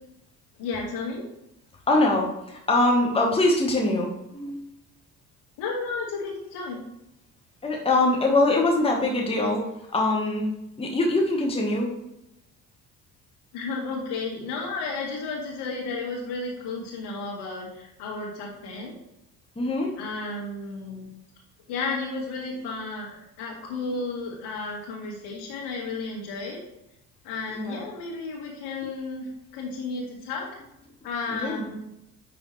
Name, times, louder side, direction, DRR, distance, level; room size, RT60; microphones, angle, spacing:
voice 1, 0.6-1.3 5.6-6.9 13.5-18.9 20.0-21.1 21.7-26.6 27.2-30.6 31.0-31.8, left 3 dB, 55° left, -2 dB, 1.9 m, -33 dB
voice 2, 1.9-4.6 7.6-9.7 9.9-10.4 10.8-11.9 19.6-19.9 27.5-27.8 31.3-31.7, left 2 dB, 10° left, 0 dB, 1.2 m, -23 dB
10.5 x 3.4 x 3.2 m, 0.85 s
figure-of-eight pair, 50°, 47 cm